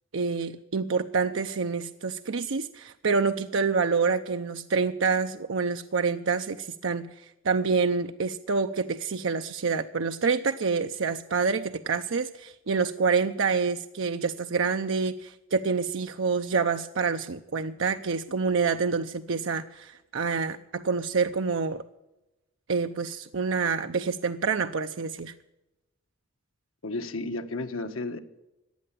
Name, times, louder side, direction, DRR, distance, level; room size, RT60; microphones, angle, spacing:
voice 1, 0.1-21.8 22.7-25.3, right 5 dB, 70° right, 7 dB, 0.6 m, -27 dB
voice 2, 26.8-28.2, left 2 dB, 90° left, 7 dB, 1.3 m, -33 dB
15.5 x 10.0 x 8.4 m, 0.97 s
head